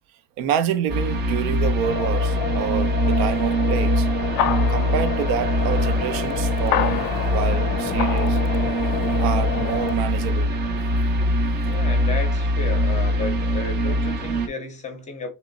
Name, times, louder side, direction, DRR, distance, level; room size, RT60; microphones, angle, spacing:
voice 1, 0.4-4.1 4.7-7.1 7.3-8.4 9.2-10.5, right 8 dB, 75° right, 0.6 m, -27 dB
sound 1, 0.9-14.5, equal, 30° right, 0.5 m, -23 dB
sound 2, 1.8-10.0, left 10 dB, 60° left, 0.5 m, -28 dB
voice 2, 11.7-15.3, left 4 dB, 20° left, 0.6 m, -32 dB
3.0 x 3.0 x 3.8 m
cardioid pair, 175°, 36 cm